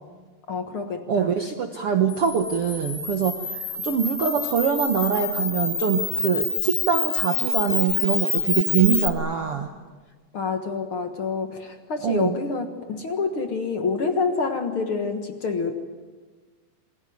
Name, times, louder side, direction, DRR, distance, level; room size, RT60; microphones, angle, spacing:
voice 1, 0.5-1.3 10.3-15.7, left 4 dB, 55° left, 6 dB, 1.7 m, -27 dB
voice 2, 1.1-9.7 12.0-12.4, right 7 dB, 65° right, 6 dB, 1.4 m, -24 dB
Camera, 2.1-9.1, left 3 dB, 25° left, 2.5 m, -27 dB
27.5 x 21.5 x 9.3 m, 1.4 s
omnidirectional pair, 4.2 m